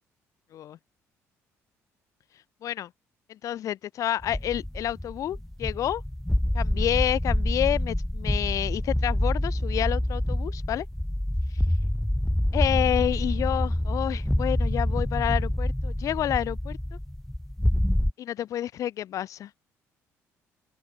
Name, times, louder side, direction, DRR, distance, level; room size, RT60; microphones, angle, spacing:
voice 1, 3.3-6.0 6.5-10.9 12.5-16.8 18.2-19.5, left 11 dB, 65° left, 7.6 m, -29 dB
sound 1, 4.2-18.1, left 1 dB, 5° left, 2.0 m, -27 dB
open air
cardioid pair, 90°, 6 cm